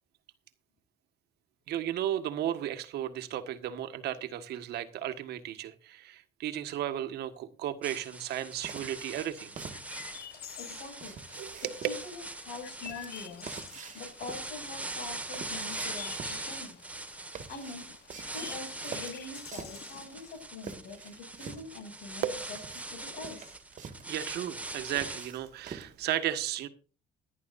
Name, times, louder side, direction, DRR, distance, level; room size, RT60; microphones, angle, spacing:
voice 1, 1.7-9.5 11.4-11.7 22.2-22.5 24.1-26.7, right 11 dB, 75° right, 1.6 m, -34 dB
sound 1, 7.8-25.3, right 2 dB, 10° right, 1.7 m, -42 dB
sound 2, 8.6-26.1, right 6 dB, 45° right, 1.9 m, -48 dB
Chirp tweet, 9.7-20.4, left 11 dB, 70° left, 1.1 m, -49 dB
voice 2, 10.6-11.2 11.8-13.5 13.9-16.8 17.5-17.9 18.3-22.6 22.9-23.5, left 3 dB, 85° left, 7.0 m, -44 dB
18.0 x 11.0 x 2.6 m
cardioid pair, 110°, 17 cm